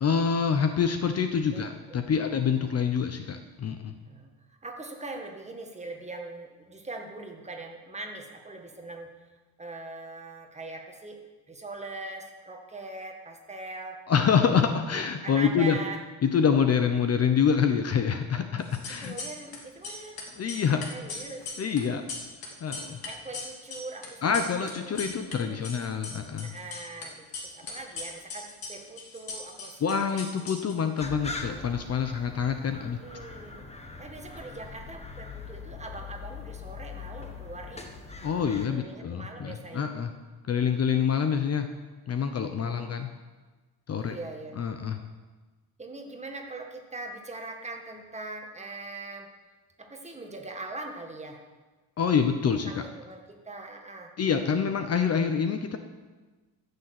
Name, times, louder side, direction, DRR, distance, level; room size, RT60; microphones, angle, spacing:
voice 1, 0.0-3.9 14.1-15.8 16.2-19.1 20.4-20.9 21.6-22.0 22.6-23.0 24.2-26.5 29.8-33.0 38.2-40.1 40.5-41.7 42.1-43.1 43.9-44.2 44.6-45.0 52.0-52.7 54.2-55.8, left 7 dB, 35° left, 7 dB, 0.8 m, -26 dB
voice 2, 4.0-9.1 9.6-11.2 11.5-14.0 14.5-14.6 14.9-16.0 19.0-20.2 20.9-21.5 22.6-24.7 24.9-25.7 26.4-30.2 32.8-33.7 34.0-37.9 38.7-39.9 42.5-42.8 43.9-44.5 45.8-49.3 49.8-51.4 52.6-54.1, right 2 dB, 15° right, 2 dB, 1.7 m, -41 dB
sound 1, 18.6-19.6 19.8-25.4 25.6-27.1 27.3-31.0, left 3 dB, 60° left, 2.9 m, -39 dB
sound 2, 31.0-38.7, left 4 dB, 15° left, 1.3 m, -42 dB
14.0 x 6.7 x 7.8 m, 1.3 s
cardioid pair, 135°, 41 cm